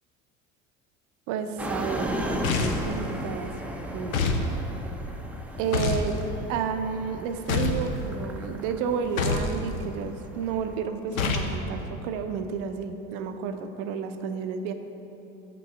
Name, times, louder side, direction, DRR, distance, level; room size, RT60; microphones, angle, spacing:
voice 1, 1.3-3.5 3.9-4.2 5.6-6.2 6.5-14.7, right 6 dB, 55° right, 8 dB, 0.6 m, -31 dB
sound 1, 1.6-10.8, equal, 5° right, 0.6 m, -36 dB
sound 2, 2.4-2.9 4.1-4.5 5.7-6.1 7.5-7.9 9.2-9.5 11.2-11.5, left 4 dB, 80° left, 0.7 m, -26 dB
6.0 x 5.3 x 6.1 m, 3.0 s
figure-of-eight pair, 70°, 41 cm